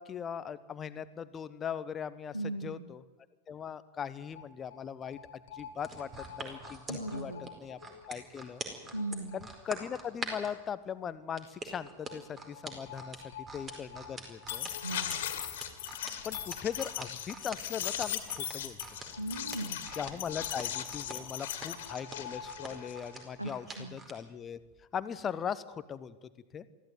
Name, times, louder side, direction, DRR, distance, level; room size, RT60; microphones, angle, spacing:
voice 1, 0.0-2.3 2.6-3.0 3.5-5.2 5.5-6.1 6.4-7.3 7.6-7.8 8.1-8.6 9.3-13.2 13.5-14.7 16.2-18.8 20.0-23.7 23.9-24.6 24.9-26.2 26.5-26.7, left 8 dB, 25° left, 14 dB, 1.0 m, -39 dB
voice 2, 2.3-2.8 6.9-7.4 8.9-9.4 14.8-15.2 19.2-19.8 23.4-24.0, right 1 dB, 85° right, 4 dB, 2.1 m, -38 dB
sound 1, 4.3-4.4 4.7-4.8 5.0-8.2 9.0-9.1 9.3-9.4 9.7-9.8 11.7-11.8 12.1-12.2 12.4-23.4, left 10 dB, 55° left, 2.5 m, -40 dB
sound 2, 5.8-10.5 11.4-24.2 24.6-24.8, right 3 dB, 20° right, 4.6 m, -44 dB
23.5 x 15.0 x 9.4 m, 1.2 s
figure-of-eight pair, 90°, 0 cm